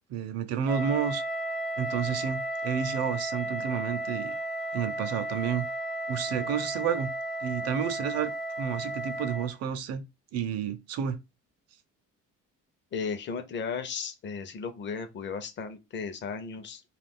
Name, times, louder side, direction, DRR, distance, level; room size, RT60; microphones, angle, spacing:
voice 1, 0.1-1.2 1.8-4.4 4.7-5.7 6.1-7.1 7.4-8.3 8.6-10.0 10.3-11.2, right 8 dB, 60° right, 0.6 m, -30 dB
Wind instrument woodwind instrument, 0.7-9.5, right 1 dB, ahead, 0.4 m, -34 dB
voice 2, 12.9-16.8, left 5 dB, 40° left, 0.6 m, -35 dB
2.4 x 2.3 x 3.5 m
cardioid pair, 125°, 30 cm